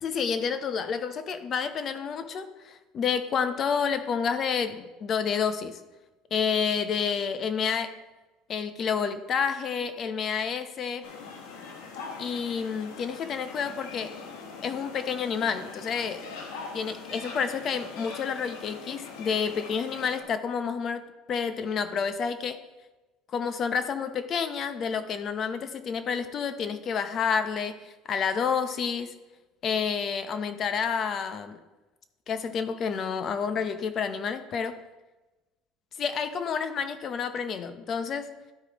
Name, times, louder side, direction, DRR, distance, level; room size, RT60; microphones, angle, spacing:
voice 1, 0.0-5.8 6.3-7.9 8.5-11.1 12.2-14.2 14.6-16.3 16.7-21.0 21.3-22.6 23.3-29.1 29.6-31.6 32.3-34.8 36.0-38.3, left 6 dB, 40° left, 10 dB, 0.7 m, -29 dB
sound 1, 11.0-20.2, left 4 dB, 85° left, 1.3 m, -42 dB
12.5 x 4.8 x 3.0 m, 1.1 s
supercardioid pair, 115°, 0 cm